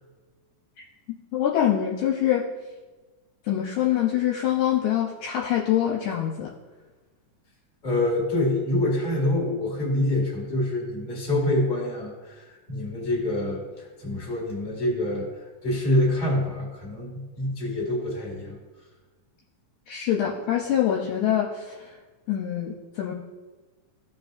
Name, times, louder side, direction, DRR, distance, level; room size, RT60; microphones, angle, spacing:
voice 1, 1.3-2.5 3.5-6.5 19.9-22.0 22.3-23.1, left 10 dB, 75° left, -2 dB, 2.0 m, -25 dB
voice 2, 7.8-15.3 15.6-18.6, left 1 dB, 25° left, -2 dB, 2.1 m, -26 dB
14.5 x 5.3 x 2.6 m, 1.2 s
omnidirectional pair, 3.8 m